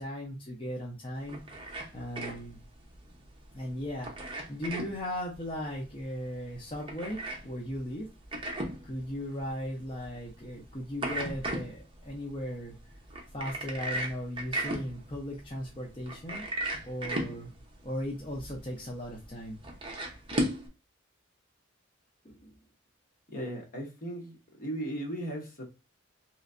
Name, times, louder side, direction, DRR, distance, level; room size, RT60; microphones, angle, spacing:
voice 1, 0.0-1.4 1.9-2.6 3.5-8.1 8.8-12.7 13.3-17.5 17.8-19.6 22.2-22.5, equal, 25° left, 0.7 m, -37 dB
sound 1, 1.2-20.7, right 1 dB, 25° right, 0.9 m, -38 dB
voice 2, 23.3-25.6, right 1 dB, 45° left, 1.1 m, -37 dB
3.3 x 3.1 x 2.5 m
head